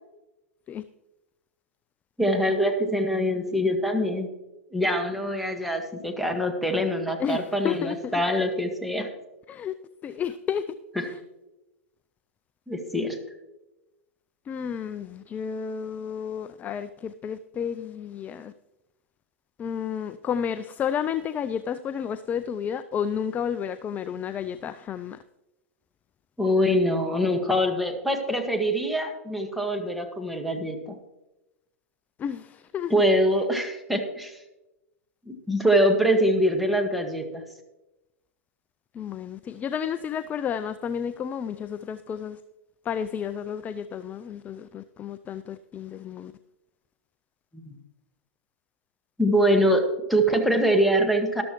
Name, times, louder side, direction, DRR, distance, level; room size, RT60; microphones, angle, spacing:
voice 1, 2.2-4.3 4.7-9.1 12.7-13.2 26.4-31.0 32.9-34.4 35.3-37.4 47.5-47.7 49.2-49.8 50.1-51.4, equal, ahead, 2 dB, 1.7 m, -24 dB
voice 2, 7.2-8.2 9.5-9.7 10.0-10.6 11.0-11.2 14.5-18.5 19.6-25.2 32.2-32.9 38.9-42.4 42.8-46.3, left 8 dB, 20° left, 12 dB, 0.4 m, -31 dB
13.0 x 12.5 x 3.1 m, 0.98 s
hypercardioid pair, 125°, 8 cm